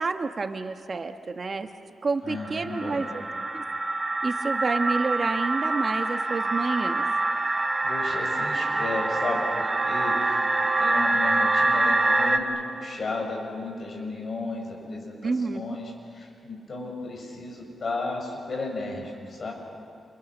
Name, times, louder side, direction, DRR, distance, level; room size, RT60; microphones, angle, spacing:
voice 1, 0.0-1.7 2.0-3.1 3.5-3.6 4.2-7.1 15.2-15.6, right 4 dB, 40° right, 7 dB, 1.2 m, -29 dB
voice 2, 2.2-3.1 7.8-15.8 16.1-19.5, left 3 dB, 50° left, 0 dB, 6.7 m, -34 dB
sound 1, 2.3-12.4, right 2 dB, 25° right, 2.4 m, -25 dB
30.0 x 28.5 x 6.2 m, 2.4 s
cardioid pair, 100°, 0 cm